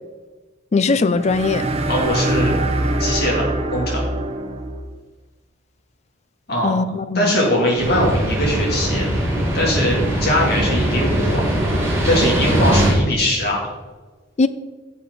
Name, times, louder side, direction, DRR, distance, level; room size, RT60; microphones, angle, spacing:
voice 1, 0.7-1.7 6.6-7.4 14.4-14.5, left 3 dB, 35° left, 14 dB, 0.4 m, -19 dB
sound 1, 1.1-4.9, right 1 dB, 30° right, 0.9 m, -23 dB
voice 2, 1.9-2.6 3.0-3.4 3.7-4.0 6.5-6.7 7.1-9.1 9.5-11.4 12.0-13.7, left 1 dB, 55° left, -3 dB, 3.1 m, -20 dB
sound 2, 7.8-12.9, right 1 dB, 15° right, 2.7 m, -20 dB
10.0 x 7.1 x 4.2 m, 1.3 s
head